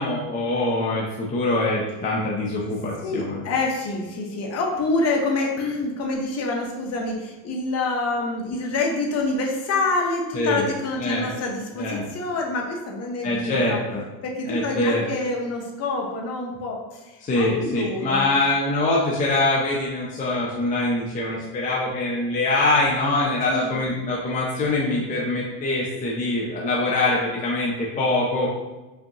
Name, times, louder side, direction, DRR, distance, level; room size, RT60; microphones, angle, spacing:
voice 1, 0.0-3.4 10.3-10.6 11.0-11.3 11.8-12.1 13.2-14.0 14.4-15.0 17.2-28.5, left 2 dB, 20° left, -4 dB, 0.5 m, -24 dB
voice 2, 3.0-13.8 14.2-18.3 23.5-23.8, left 2 dB, 40° left, 0 dB, 0.8 m, -27 dB
5.2 x 2.8 x 2.7 m, 1.1 s
cardioid pair, 140°, 41 cm